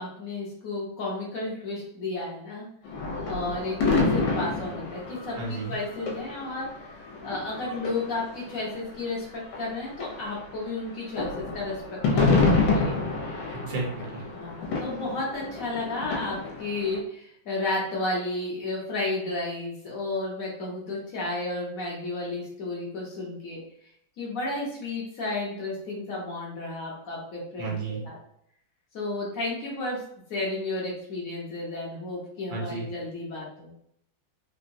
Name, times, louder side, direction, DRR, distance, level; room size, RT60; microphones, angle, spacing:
voice 1, 0.0-2.7 3.3-7.0 7.2-13.0 14.3-23.6 24.2-27.7 28.0-28.2 28.9-30.0 30.3-33.7, left 2 dB, 55° left, -4 dB, 1.1 m, -32 dB
sound 1, 2.9-9.2 9.5-17.0, left 3 dB, 75° left, 1.4 m, -28 dB
voice 2, 5.3-5.8 13.5-14.2 27.6-28.0 32.5-32.9, right 3 dB, 55° right, -3 dB, 0.9 m, -33 dB
3.8 x 2.1 x 2.6 m, 0.68 s
omnidirectional pair, 2.2 m